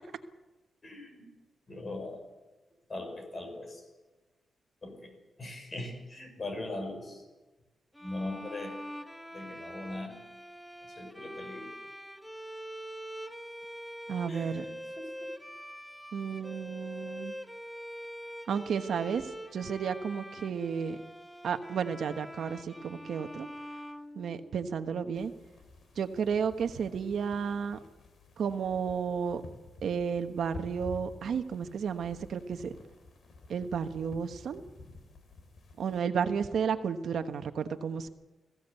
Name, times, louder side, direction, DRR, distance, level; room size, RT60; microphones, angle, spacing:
voice 1, 0.8-1.3 1.7-2.2 2.9-3.9 4.8-7.3 8.0-8.7 9.3-10.2 10.9-11.8 14.3-15.3, left 2 dB, 35° left, 5 dB, 5.3 m, -40 dB
sound 1, 7.9-24.8, equal, 5° left, 1.1 m, -44 dB
voice 2, 14.1-14.6 16.1-17.3 18.5-19.2 19.5-21.0 21.4-23.5 24.2-25.3 26.0-27.8 28.4-29.4 29.8-32.7 33.5-34.6 35.8-38.1, right 6 dB, 75° right, 8 dB, 1.2 m, -32 dB
sound 2, 25.1-36.0, left 3 dB, 60° left, 3.9 m, -50 dB
21.0 x 16.0 x 8.2 m, 1.2 s
cardioid pair, 115°, 0 cm